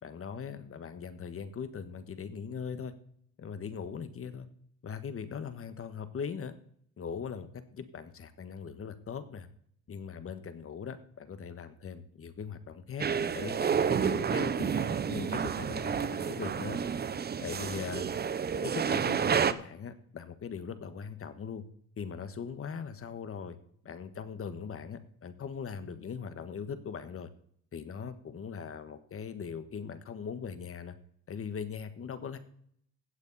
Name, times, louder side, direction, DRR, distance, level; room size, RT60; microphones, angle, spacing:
voice 1, 0.0-2.9 3.4-4.5 4.8-6.5 7.0-9.5 9.9-13.0 13.3-16.8 17.4-18.0 18.6-21.6 22.0-23.6 23.8-27.3 27.7-31.0 31.3-32.4, left 6 dB, 45° left, 11 dB, 1.4 m, -40 dB
sound 1, 13.0-19.5, right 7 dB, 35° right, 0.7 m, -30 dB
16.0 x 8.3 x 4.1 m, 0.65 s
cardioid pair, 90°, 30 cm